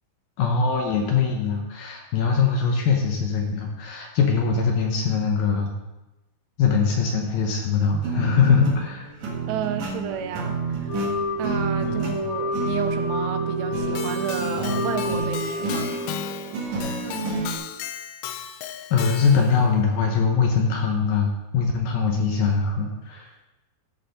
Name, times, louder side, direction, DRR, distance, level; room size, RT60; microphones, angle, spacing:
voice 1, 0.4-5.7 6.6-9.0 11.5-12.2 18.9-23.3, left 5 dB, 70° left, 1 dB, 2.4 m, -22 dB
sound 1, 8.0-17.6, right 4 dB, 60° right, 2.1 m, -29 dB
voice 2, 9.5-11.0 11.4-16.0, right 9 dB, 85° right, 8 dB, 2.5 m, -32 dB
Wind instrument woodwind instrument, 10.9-16.5, left 2 dB, 50° left, 3.2 m, -29 dB
Keyboard (musical), 14.0-19.6, left 11 dB, 90° left, 2.2 m, -35 dB
13.5 x 6.4 x 3.9 m, 1.0 s
omnidirectional pair, 5.1 m